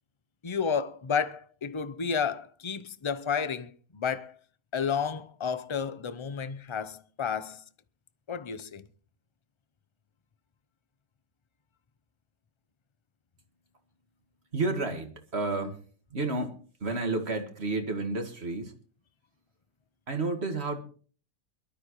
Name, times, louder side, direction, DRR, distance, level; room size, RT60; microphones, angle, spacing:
voice 1, 0.4-4.4 4.7-7.6 8.3-8.9, left 6 dB, 35° left, 0.4 m, -31 dB
voice 2, 14.5-15.8 16.1-18.7 20.1-20.8, right 3 dB, 45° right, 2.1 m, -31 dB
23.5 x 12.5 x 3.1 m
omnidirectional pair, 1.5 m